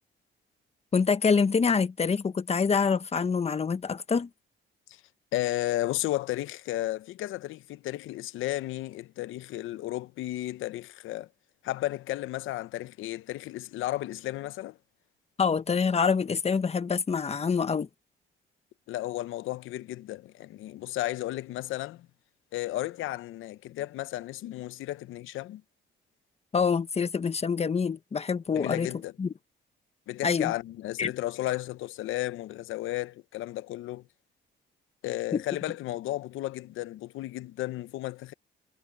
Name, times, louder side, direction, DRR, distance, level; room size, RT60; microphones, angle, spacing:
voice 1, 0.9-4.3 15.4-17.9 26.5-28.9 29.2-29.3 30.2-30.5 31.0-31.1 35.3-35.4, left 5 dB, 30° left, 1.1 m, -26 dB
voice 2, 5.3-11.3 11.6-14.8 18.9-22.1 22.5-25.6 28.5-29.1 30.1-34.0 35.0-38.3, left 15 dB, 85° left, 0.8 m, -33 dB
cardioid pair, 90°, 20 cm